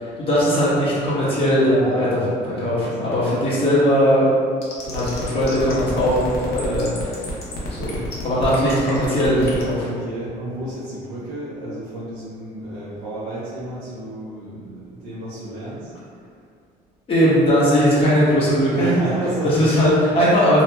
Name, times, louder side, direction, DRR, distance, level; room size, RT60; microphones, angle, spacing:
voice 1, 0.2-2.2 2.4-4.3 4.8-7.2 7.7-8.0 8.2-9.9 17.1-18.9 19.4-20.6, equal, 35° left, -9 dB, 1.0 m, -19 dB
voice 2, 1.8-3.2 9.8-15.9 18.8-19.7, right 1 dB, 85° right, -10 dB, 0.7 m, -31 dB
sound 1, 4.6-9.7, left 2 dB, 70° left, 0.7 m, -31 dB
2.8 x 2.8 x 2.2 m, 2.3 s
cardioid pair, 110°, 17 cm